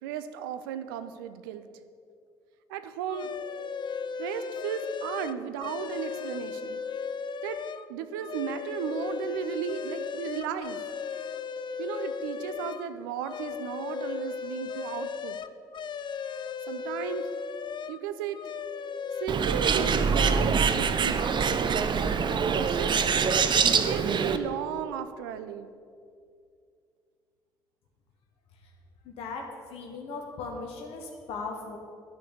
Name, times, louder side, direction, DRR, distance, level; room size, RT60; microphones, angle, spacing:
voice 1, 0.0-1.7 2.7-3.3 4.2-6.8 7.4-7.6 7.9-10.8 11.8-15.4 16.7-17.3 17.9-18.4 19.2-21.3 22.2-23.0 23.8-25.7, right 8 dB, 80° right, 11 dB, 0.6 m, -35 dB
sound 1, 3.1-7.9 8.2-12.9 13.2-18.0 18.3-19.3, left 6 dB, 40° left, 0.6 m, -36 dB
Bird, 19.3-24.4, right 6 dB, 45° right, 0.8 m, -24 dB
voice 2, 29.0-29.4 29.7-31.8, left 4 dB, 60° left, 1 dB, 1.5 m, -38 dB
11.0 x 6.6 x 8.2 m, 2.3 s
hypercardioid pair, 50°, 11 cm